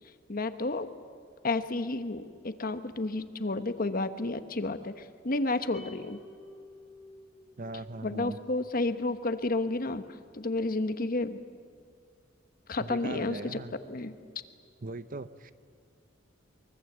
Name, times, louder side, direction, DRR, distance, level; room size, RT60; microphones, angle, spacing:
voice 1, 0.3-0.9 1.4-6.2 8.0-10.0 10.3-11.4 12.7-13.6 13.9-14.1, left 2 dB, 50° left, 10 dB, 1.1 m, -31 dB
sound 1, 5.7-8.2, left 1 dB, ahead, 2.4 m, -51 dB
voice 2, 7.6-8.4 12.8-13.7 14.8-15.5, right 2 dB, 45° right, 13 dB, 0.8 m, -39 dB
24.0 x 22.5 x 8.1 m, 2.1 s
head